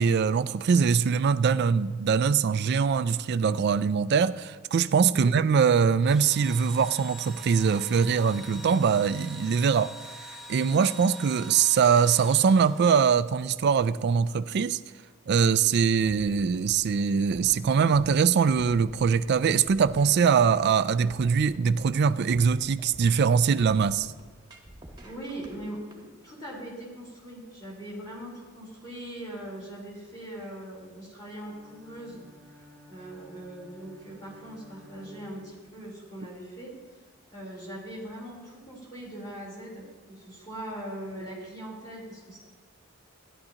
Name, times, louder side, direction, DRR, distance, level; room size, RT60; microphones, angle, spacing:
voice 1, 0.0-14.8 15.3-24.1, right 6 dB, 50° right, 0.3 m, -23 dB
Engine / Drill, 6.0-13.4, right 1 dB, ahead, 0.9 m, -45 dB
sound 1, 16.1-26.0, right 1 dB, 20° right, 1.4 m, -48 dB
voice 2, 25.0-36.8 37.3-42.4, right 1 dB, 20° left, 3.8 m, -41 dB
Bowed string instrument, 31.4-36.0, left 1 dB, 85° left, 2.3 m, -53 dB
14.0 x 10.5 x 2.9 m
head